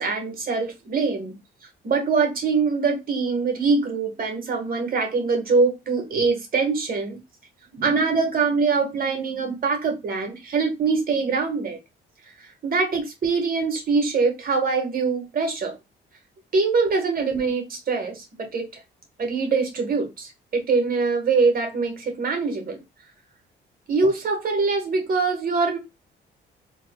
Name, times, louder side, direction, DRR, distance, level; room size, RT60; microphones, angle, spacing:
voice 1, 0.0-1.4 1.8-7.2 7.8-11.8 12.6-15.8 16.5-18.7 19.2-22.8 23.9-25.8, right 4 dB, 45° right, 4 dB, 1.3 m, -23 dB
3.8 x 2.7 x 2.2 m, 0.24 s
cardioid pair, 90°, 20 cm